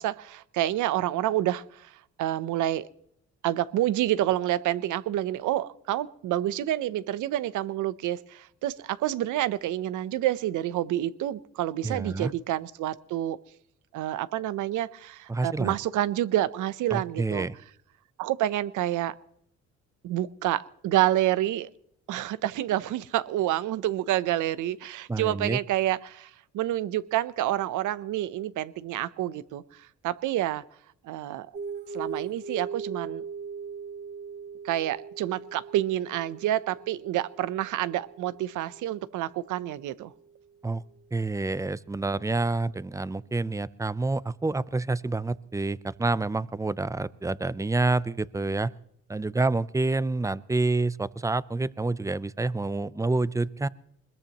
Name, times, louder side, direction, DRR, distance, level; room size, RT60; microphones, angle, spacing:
voice 1, 0.0-1.9 2.2-2.9 3.4-13.4 13.9-17.5 18.2-19.1 20.0-21.7 22.1-30.6 31.0-31.5 31.9-33.3 34.6-40.1, right 13 dB, 85° right, 17 dB, 0.8 m, -28 dB
voice 2, 11.8-12.3 15.3-15.8 16.9-17.5 25.1-25.6 40.6-40.8 41.1-48.7 49.1-53.7, right 3 dB, 10° right, 18 dB, 0.6 m, -28 dB
sound 1, 31.5-40.5, right 5 dB, 35° right, 3.3 m, -40 dB
21.5 x 21.0 x 3.0 m, 0.69 s
cardioid pair, 90°, 30 cm